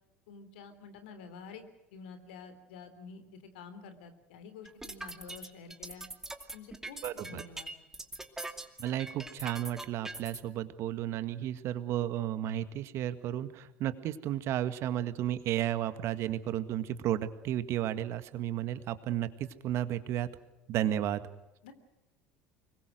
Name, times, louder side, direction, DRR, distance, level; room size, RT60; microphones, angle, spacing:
voice 1, 0.3-6.0 6.5-7.8 21.6-21.7, left 5 dB, 75° left, 10 dB, 3.3 m, -49 dB
sound 1, 4.7-10.4, right 2 dB, 10° right, 2.5 m, -42 dB
voice 2, 7.0-7.4 8.8-20.3 20.7-21.2, right 12 dB, 55° right, 12 dB, 1.8 m, -33 dB
25.0 x 22.5 x 6.4 m, 0.96 s
hypercardioid pair, 70°, 5 cm